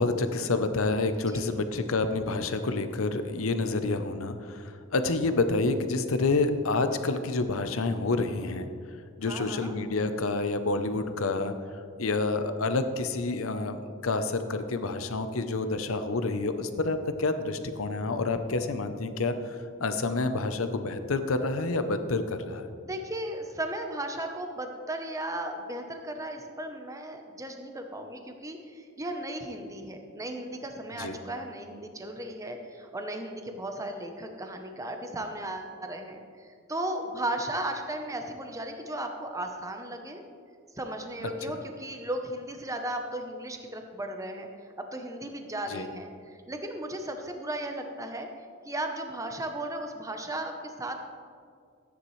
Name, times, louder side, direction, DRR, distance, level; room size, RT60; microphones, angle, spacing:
voice 1, 0.0-8.7 9.2-11.5 12.0-22.7 31.0-31.2 45.7-45.9, left 3 dB, 70° left, 9 dB, 0.7 m, -28 dB
voice 2, 9.3-9.8 22.8-40.2 40.7-44.5 44.8-48.3 48.7-51.0, right 1 dB, 15° right, 4 dB, 0.8 m, -36 dB
13.5 x 9.5 x 3.2 m, 2.3 s
head